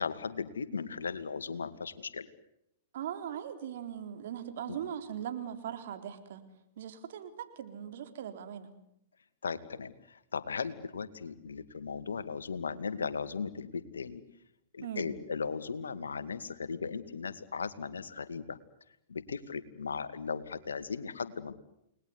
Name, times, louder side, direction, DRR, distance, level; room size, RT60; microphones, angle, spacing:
voice 1, 0.0-2.3 4.7-4.8 9.4-14.2 14.7-18.6 19.1-21.5, left 5 dB, 90° left, 11 dB, 2.2 m, -37 dB
voice 2, 2.9-6.4 6.8-8.7 14.8-15.1, right 9 dB, 65° right, 8 dB, 3.9 m, -40 dB
30.0 x 20.5 x 9.7 m, 0.79 s
hypercardioid pair, 115°, 0 cm